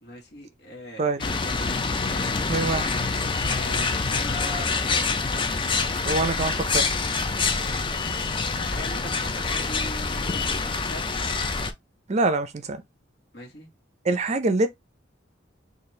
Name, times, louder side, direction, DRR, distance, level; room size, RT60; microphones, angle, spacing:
voice 1, 0.0-2.3 3.4-5.0 7.6-7.9 8.5-11.2 13.3-13.7, left 1 dB, 60° left, 1.5 m, -41 dB
sound 1, 1.2-11.7, left 4 dB, 25° left, 0.5 m, -26 dB
voice 2, 2.5-3.0 6.1-6.9 12.1-12.8 14.0-14.7, right 3 dB, 35° right, 0.5 m, -24 dB
4.2 x 2.5 x 3.2 m
head